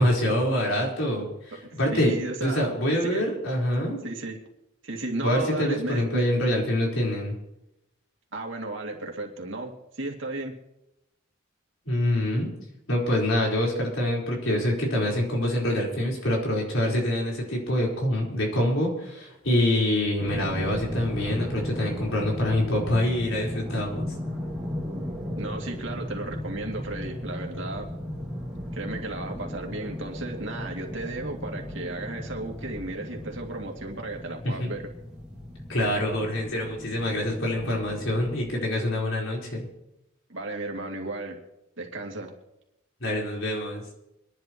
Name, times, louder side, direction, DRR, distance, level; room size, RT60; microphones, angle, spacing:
voice 1, 0.0-2.1 2.4-4.0 5.2-7.4 11.8-12.5 12.9-24.1 34.4-34.7 35.7-39.7 43.0-43.8, left 1 dB, 80° left, -2 dB, 4.3 m, -25 dB
voice 2, 1.9-2.7 3.0-3.2 4.0-4.4 4.8-6.2 8.3-9.7 10.0-10.5 25.4-27.9 28.7-34.8 40.3-41.4 41.8-42.3, right 2 dB, 70° right, 1 dB, 2.5 m, -34 dB
sound 1, 20.2-38.5, equal, 5° right, 2.1 m, -36 dB
25.0 x 11.0 x 3.1 m, 0.88 s
head